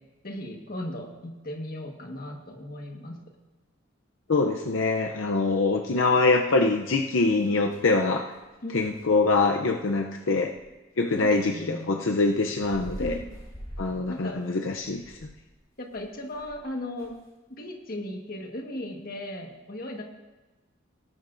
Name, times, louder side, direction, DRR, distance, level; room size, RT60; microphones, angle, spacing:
voice 1, 0.2-3.2 8.6-9.1 11.1-12.1 13.0-13.4 14.1-14.4 15.8-17.1 17.5-20.0, left 1 dB, 50° left, 2 dB, 1.5 m, -36 dB
voice 2, 4.3-8.3 8.7-10.5 11.0-13.1 13.8-15.2, left 3 dB, 75° left, 3 dB, 0.6 m, -24 dB
sound 1, 7.3-7.9 8.3-8.5 8.8-9.1 10.5-10.7 12.3-16.7 17.0-17.3, equal, 20° left, 3.3 m, -43 dB
18.5 x 11.0 x 2.6 m, 1.1 s
head